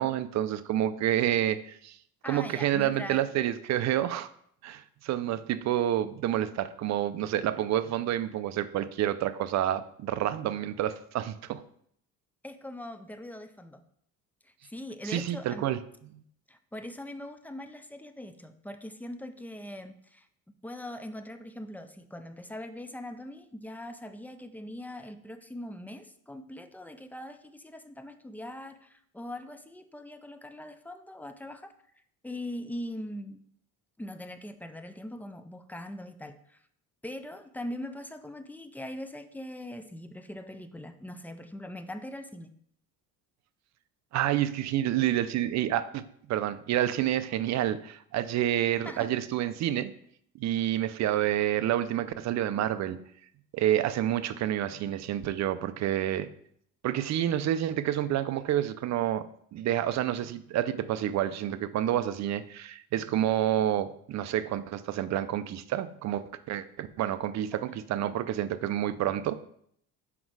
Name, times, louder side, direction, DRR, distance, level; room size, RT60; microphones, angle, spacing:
voice 1, 0.0-2.0 2.3-4.3 4.6-11.6 15.0-15.8 16.1-16.2 44.1-46.0 46.3-49.9 50.4-53.0 53.5-56.3 56.8-59.3 59.5-69.4, right 12 dB, 55° right, 13 dB, 0.5 m, -29 dB
voice 2, 2.2-3.3 12.4-13.8 14.4-15.8 16.5-20.3 20.6-31.7 32.2-33.4 34.0-36.6 37.0-42.5 48.8-49.1, left 1 dB, 5° left, 9 dB, 0.3 m, -41 dB
6.0 x 5.2 x 4.7 m, 0.67 s
cardioid pair, 145°, 34 cm